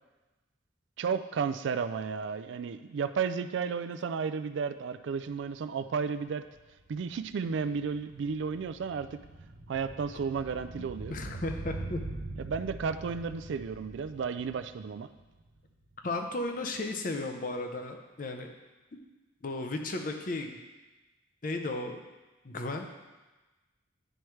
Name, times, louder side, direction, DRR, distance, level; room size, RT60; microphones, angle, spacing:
voice 1, 1.0-6.5 6.9-9.2 9.7-11.1 12.4-15.1, right 6 dB, 70° right, 10 dB, 0.3 m, -33 dB
sound 1, 6.4-15.9 16.2-16.3, right 2 dB, 90° right, 0.7 m, -44 dB
voice 2, 10.8-12.0 16.0-18.5 18.9-19.0 19.4-20.6 21.4-22.0 22.4-22.9, left 2 dB, 40° left, 4 dB, 0.6 m, -35 dB
10.0 x 4.6 x 3.2 m, 1.2 s
head